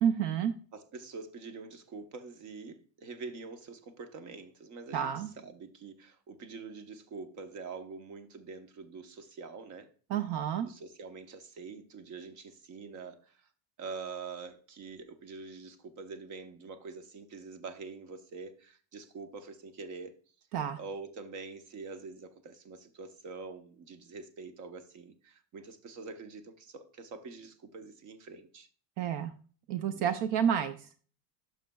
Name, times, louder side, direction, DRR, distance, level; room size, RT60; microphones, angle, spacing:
voice 1, 0.0-0.5 4.9-5.3 10.1-10.7 20.5-20.8 29.0-29.3 29.7-30.8, right 8 dB, 70° right, 0.7 m, -29 dB
voice 2, 0.7-9.9 10.6-13.4 13.8-20.2 20.8-28.7 29.9-30.1, right 4 dB, 45° right, 1.0 m, -45 dB
11.5 x 6.4 x 2.3 m
cardioid pair, 165°, 41 cm